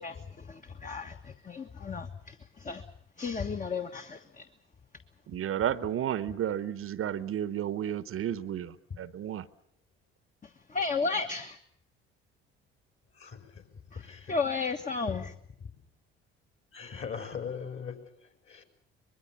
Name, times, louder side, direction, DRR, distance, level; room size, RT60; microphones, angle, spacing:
voice 1, 0.0-2.8 3.2-4.4 10.7-11.6 13.9-15.3, left 4 dB, 25° left, 1.4 m, -34 dB
voice 2, 5.3-9.4, right 10 dB, 50° right, 1.0 m, -32 dB
voice 3, 14.0-14.3 16.7-17.9 18.5-18.6, left 6 dB, 45° left, 4.6 m, -39 dB
24.5 x 21.5 x 7.2 m
hypercardioid pair, 55°, 29 cm